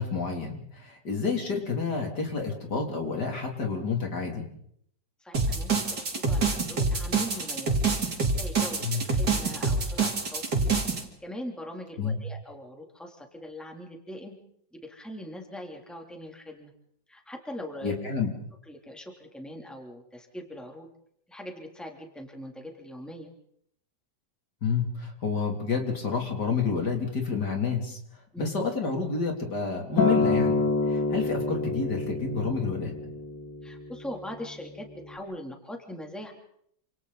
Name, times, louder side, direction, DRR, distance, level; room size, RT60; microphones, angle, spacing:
voice 1, 0.0-4.5 8.8-9.0 12.0-12.2 17.8-18.3 24.6-28.0 28.4-32.9, left 5 dB, 65° left, 2 dB, 4.0 m, -29 dB
voice 2, 5.2-7.8 8.3-10.7 11.2-14.3 14.7-16.7 17.1-17.9 18.7-20.9 21.3-23.3 28.3-28.5 33.6-36.3, equal, ahead, 1 dB, 3.2 m, -41 dB
sound 1, 5.3-11.0, right 4 dB, 60° right, 3.6 m, -26 dB
Acoustic guitar, 30.0-34.3 35.1-35.2, left 3 dB, 80° left, 2.9 m, -27 dB
28.5 x 27.5 x 4.2 m, 0.69 s
omnidirectional pair, 1.9 m